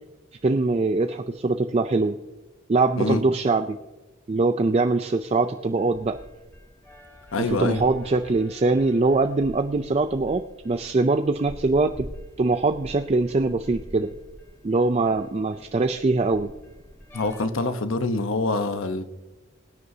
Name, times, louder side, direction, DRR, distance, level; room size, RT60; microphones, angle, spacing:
voice 1, 0.4-2.2 2.7-3.8 4.3-6.2 7.5-12.1 12.4-14.1 14.6-16.5, right 3 dB, 30° right, 8 dB, 0.4 m, -22 dB
sound 1, 5.5-17.5, equal, 10° left, 1.4 m, -46 dB
voice 2, 7.3-7.8 17.1-19.0, left 3 dB, 80° left, 9 dB, 0.9 m, -25 dB
22.0 x 9.6 x 2.8 m, 1.1 s
head